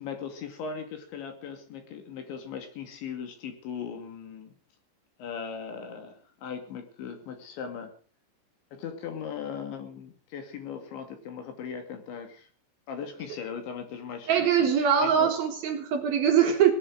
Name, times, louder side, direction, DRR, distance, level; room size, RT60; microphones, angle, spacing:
voice 1, 0.0-4.5 5.2-7.9 8.7-12.5 12.9-15.3, left 7 dB, 65° left, 4.7 m, -38 dB
voice 2, 14.3-16.7, right 8 dB, 60° right, 3.0 m, -22 dB
18.5 x 12.0 x 6.4 m
omnidirectional pair, 5.8 m